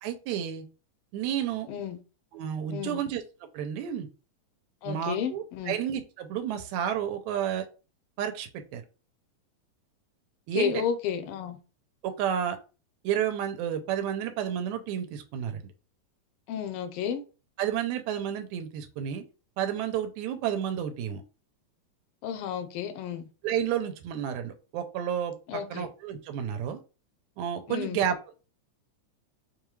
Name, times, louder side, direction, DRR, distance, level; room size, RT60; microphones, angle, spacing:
voice 1, 0.0-0.7 1.1-1.7 2.3-3.2 3.5-4.1 4.9-7.7 8.2-8.8 10.5-10.8 12.0-12.6 13.0-15.6 17.6-19.2 19.6-21.2 23.4-25.3 25.7-26.8 27.4-28.3, right 9 dB, 80° right, 2.0 m, -31 dB
voice 2, 1.7-2.0 2.7-3.0 4.8-5.8 10.5-11.6 16.5-17.2 22.2-23.2 25.5-25.9 27.7-28.0, left 8 dB, 80° left, 1.3 m, -32 dB
5.2 x 2.3 x 3.1 m
omnidirectional pair, 3.3 m